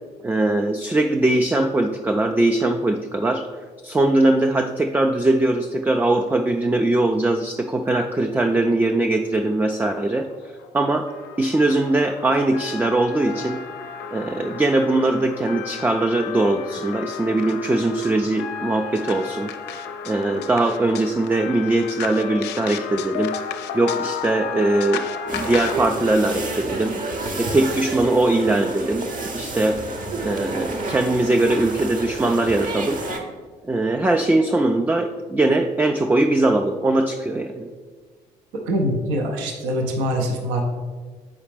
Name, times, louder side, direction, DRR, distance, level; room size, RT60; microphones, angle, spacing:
voice 1, 0.2-3.5 3.8-10.3 10.7-11.1 11.4-13.6 14.1-19.5 20.1-23.4 23.7-27.0 27.4-29.1 29.3-29.8 30.2-33.0 33.6-37.7, right 2 dB, 10° right, 4 dB, 0.4 m, -21 dB
sound 1, 9.2-9.3 9.6-9.8 10.1-25.8, left 7 dB, 55° left, 0.5 m, -33 dB
sound 2, 25.3-33.2, right 2 dB, 40° right, 1.0 m, -30 dB
voice 2, 38.5-40.6, equal, 65° right, 2 dB, 0.8 m, -24 dB
7.2 x 4.8 x 3.3 m, 1.5 s
figure-of-eight pair, 40°, 21 cm